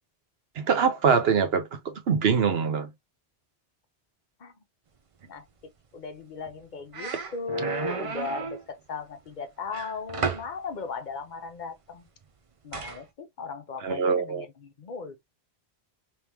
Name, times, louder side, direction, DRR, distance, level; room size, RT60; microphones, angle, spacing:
voice 1, 0.6-2.9 13.8-14.4, right 6 dB, 70° right, 1.1 m, -24 dB
voice 2, 5.9-12.1 12.6-15.2, left 4 dB, 50° left, 0.8 m, -37 dB
sound 1, 6.5-6.6 6.9-8.6 9.7-10.5 12.7-13.0, right 5 dB, 45° right, 0.5 m, -33 dB
3.4 x 3.1 x 2.8 m
omnidirectional pair, 1.1 m